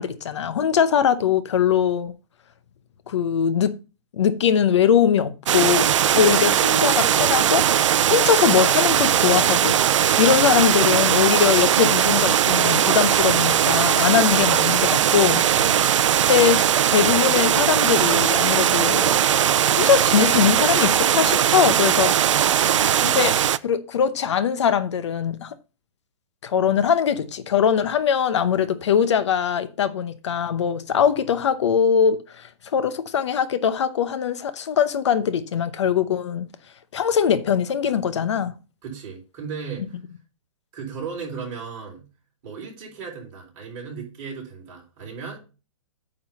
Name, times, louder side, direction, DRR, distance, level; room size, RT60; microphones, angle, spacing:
voice 1, 0.0-2.1 3.1-3.7 4.1-15.5 16.3-16.6 16.9-19.1 19.7-22.5 23.0-25.5 26.4-36.5 36.9-38.6, left 8 dB, 60° left, 0.9 m, -21 dB
sound 1, 5.5-23.6, right 10 dB, 65° right, 0.5 m, -19 dB
voice 2, 15.5-15.9 38.8-40.0 40.7-42.1 42.4-45.4, right 5 dB, 30° right, 4.1 m, -35 dB
9.0 x 3.9 x 7.0 m
hypercardioid pair, 165°, 17 cm